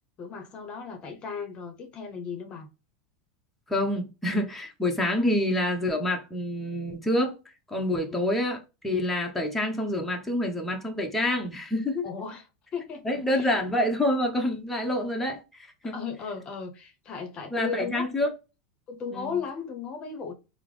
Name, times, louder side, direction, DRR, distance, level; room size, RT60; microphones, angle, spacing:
voice 1, 0.2-2.7 7.9-8.2 12.0-12.4 12.7-13.5 15.8-18.0 18.9-20.3, left 5 dB, 35° left, 0.8 m, -36 dB
voice 2, 3.7-7.4 7.7-12.0 13.0-15.9 17.5-18.3 19.1-19.4, left 1 dB, 5° left, 0.8 m, -27 dB
3.5 x 2.0 x 3.1 m
hypercardioid pair, 105°, 3 cm